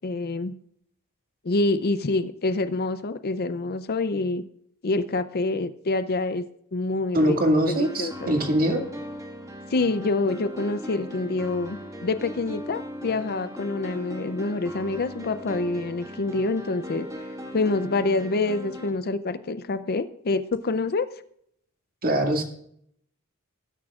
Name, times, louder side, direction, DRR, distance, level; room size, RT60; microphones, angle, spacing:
voice 1, 0.0-0.5 1.4-4.4 4.8-6.4 6.7-7.4 7.8-8.3 9.7-11.8 12.0-17.1 17.5-21.1, left 3 dB, 45° left, 13 dB, 0.5 m, -26 dB
voice 2, 7.1-8.8 22.0-22.4, right 1 dB, 40° right, 3 dB, 2.1 m, -22 dB
sound 1, 7.7-18.9, equal, 15° right, 1.7 m, -39 dB
19.0 x 9.6 x 2.4 m, 0.69 s
head